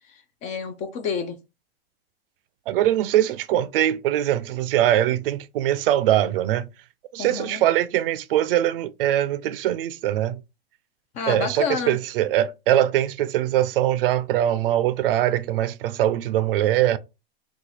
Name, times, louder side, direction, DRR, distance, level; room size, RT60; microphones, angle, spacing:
voice 1, 0.1-1.4 7.2-7.6 11.1-12.0, left 6 dB, 25° left, 0.4 m, -29 dB
voice 2, 2.7-6.7 7.1-10.4 11.3-17.0, right 12 dB, 65° right, 0.5 m, -22 dB
2.9 x 2.4 x 3.9 m
hypercardioid pair, 135°, 31 cm